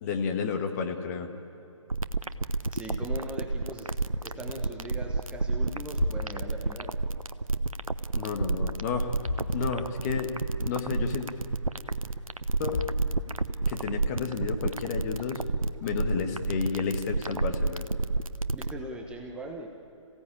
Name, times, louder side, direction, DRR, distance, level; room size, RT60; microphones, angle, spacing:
voice 1, 0.0-1.3 8.1-9.1 9.4-10.3 10.6-11.3 12.6-12.8 13.7-15.4 15.8-17.9, left 5 dB, 30° left, 4 dB, 1.7 m, -31 dB
sound 1, 1.9-18.7, right 3 dB, 90° right, 0.8 m, -29 dB
voice 2, 2.7-3.9 4.2-7.0 18.5-19.7, right 1 dB, 5° right, 1 dB, 1.2 m, -40 dB
sound 2, 4.1-4.6 4.9-5.3 5.7-7.6 7.8-8.5 8.8-8.9 9.2-10.2 10.5-10.6 11.2-11.3 12.3-12.4 12.7-13.7, left 3 dB, 60° left, 2.6 m, -38 dB
27.5 x 16.5 x 8.8 m, 2.8 s
figure-of-eight pair, 135°, 17 cm